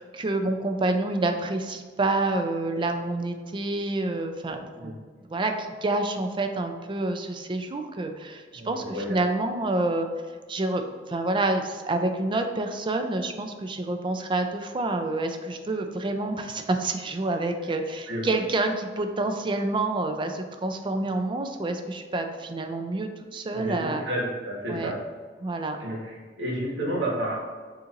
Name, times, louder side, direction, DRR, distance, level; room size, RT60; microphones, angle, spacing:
voice 1, 0.0-4.9 5.3-10.1 10.5-24.0 24.7-24.9 25.4-25.8, right 2 dB, 25° right, 6 dB, 0.4 m, -28 dB
voice 2, 8.5-9.2 18.1-18.2 23.5-25.0 25.7-27.3, right 1 dB, 75° right, -5 dB, 1.4 m, -31 dB
6.5 x 2.9 x 2.5 m, 1.5 s
head